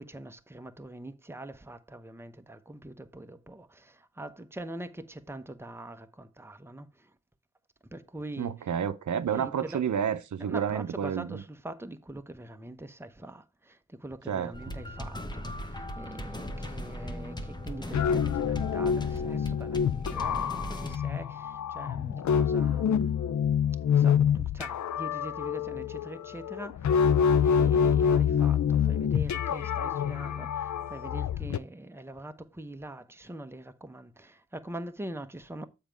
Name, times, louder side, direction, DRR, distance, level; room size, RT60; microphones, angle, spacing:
voice 1, 0.0-7.1 7.9-8.7 9.3-9.8 10.4-23.1 23.9-35.7, right 1 dB, 10° right, 0.7 m, -43 dB
voice 2, 8.4-11.4 14.3-14.5, right 8 dB, 75° right, 0.6 m, -30 dB
sound 1, 14.5-21.0, left 1 dB, 15° left, 1.0 m, -38 dB
sound 2, 17.7-31.6, left 7 dB, 70° left, 0.5 m, -26 dB
7.2 x 4.6 x 5.0 m
cardioid pair, 60°, 29 cm